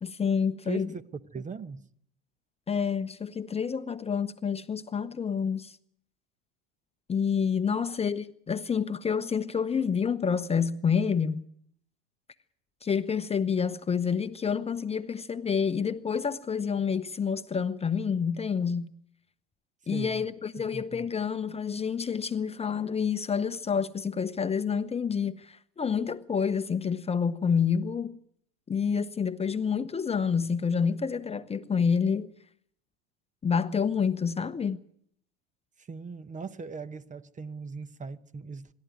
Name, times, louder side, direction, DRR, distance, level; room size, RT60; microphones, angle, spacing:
voice 1, 0.0-0.9 2.7-5.8 7.1-11.4 12.8-18.9 19.9-28.2 28.7-32.3 33.4-34.8, left 6 dB, 20° left, 0.9 m, -28 dB
voice 2, 0.6-1.0 1.3-1.9 7.7-8.0 19.9-20.3 20.5-21.1 35.8-38.7, right 5 dB, 25° right, 1.0 m, -39 dB
25.5 x 12.5 x 9.3 m
supercardioid pair, 105°, 32 cm